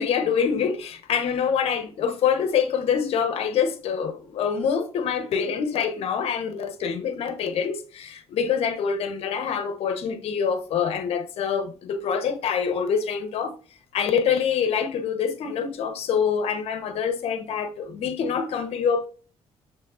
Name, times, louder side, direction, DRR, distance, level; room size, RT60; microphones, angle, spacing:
voice 1, 0.0-13.5 13.9-19.1, left 7 dB, 65° left, 0.9 m, -25 dB
6.4 x 3.3 x 2.4 m
cardioid pair, 120°, 11 cm